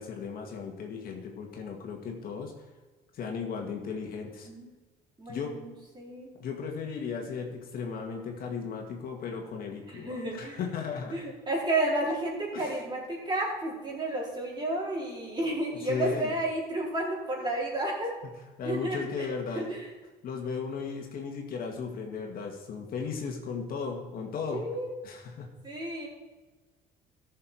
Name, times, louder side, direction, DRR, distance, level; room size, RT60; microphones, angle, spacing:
voice 1, 0.0-2.5 3.1-4.5 5.3-5.6 6.4-11.2 12.5-12.8 15.9-16.3 18.6-19.7 20.2-24.7 25.0-25.5, left 5 dB, 60° left, 2 dB, 2.1 m, -36 dB
voice 2, 5.2-6.3 9.9-10.6 11.1-18.1 18.6-19.3 19.5-19.8 24.5-24.9 25.6-26.1, right 1 dB, 25° right, -4 dB, 4.4 m, -32 dB
14.5 x 6.7 x 4.8 m, 1.2 s
cardioid pair, 110°, 17 cm